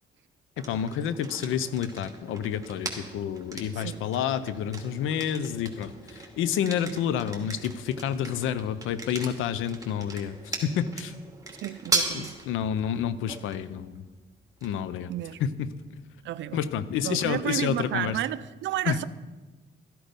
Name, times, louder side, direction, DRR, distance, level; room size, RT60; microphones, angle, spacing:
voice 1, 0.6-11.1 12.1-14.0 14.6-15.1 15.4-16.0 16.5-18.2 18.9-19.0, left 9 dB, 90° left, 0.7 m, -29 dB
sound 1, 0.6-18.3, right 3 dB, 15° right, 2.5 m, -39 dB
voice 2, 11.6-12.3 15.1-15.4 16.2-16.6 17.0-19.1, right 13 dB, 70° right, 0.4 m, -31 dB
13.5 x 10.5 x 5.3 m
cardioid pair, 90°, 20 cm